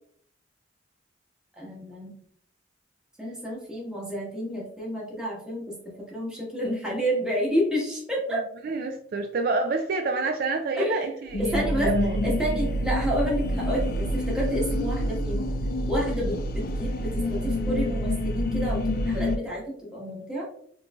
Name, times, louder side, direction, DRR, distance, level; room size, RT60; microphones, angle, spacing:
voice 1, 1.6-2.1 3.2-8.4 10.8-11.0 11.4-11.9 12.2-15.5 15.9-20.4, equal, 5° right, -5 dB, 1.1 m, -30 dB
voice 2, 8.3-12.2 14.7-14.9, right 3 dB, 50° right, 5 dB, 0.3 m, -28 dB
sound 1, 11.3-19.4, equal, 50° left, 0.3 m, -27 dB
3.8 x 3.0 x 2.2 m, 0.63 s
head